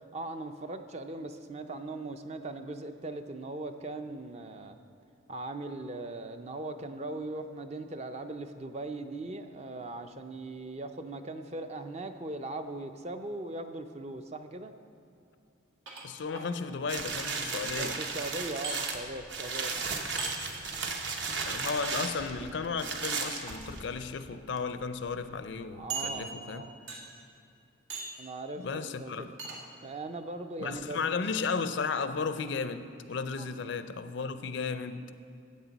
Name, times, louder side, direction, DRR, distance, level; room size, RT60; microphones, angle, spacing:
voice 1, 0.1-4.8 5.3-14.7 17.7-19.9 20.2-20.3 25.7-26.8 28.2-29.3 29.8-31.1 33.4-33.5, right 2 dB, 30° right, 0.5 m, -39 dB
sound 1, 15.9-16.5 18.6-18.8 20.2-20.3 21.8-21.9 23.3-23.5 24.3-24.4 24.7-24.8 25.9-26.5 26.9-27.2 27.9-28.2 29.4-29.6, right 4 dB, 85° right, 1.8 m, -38 dB
voice 2, 16.0-18.0 21.4-26.7 28.6-29.3 30.6-35.1, left 5 dB, 60° left, 0.4 m, -34 dB
sound 2, 16.9-24.0 24.6-24.7, right 4 dB, 60° right, 0.9 m, -35 dB
15.0 x 8.3 x 4.0 m
head